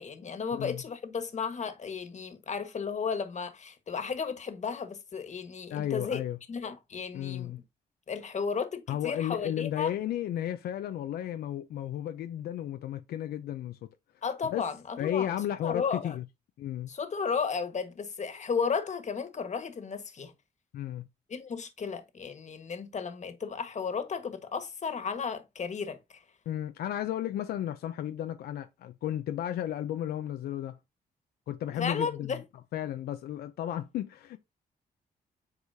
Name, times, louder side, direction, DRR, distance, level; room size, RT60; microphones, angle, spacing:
voice 1, 0.0-6.2 6.5-7.6 8.1-9.9 14.2-15.3 15.6-16.2 16.9-20.3 21.3-26.2 31.8-32.4, left 5 dB, 50° left, 1.6 m, -34 dB
voice 2, 0.5-0.8 5.7-6.4 7.1-7.6 8.9-13.9 14.4-14.6 15.0-16.3 16.6-16.9 20.7-21.1 26.5-30.8 31.5-32.4 32.7-34.4, left 11 dB, 85° left, 0.6 m, -33 dB
8.4 x 4.8 x 2.7 m
cardioid pair, 80°, 16 cm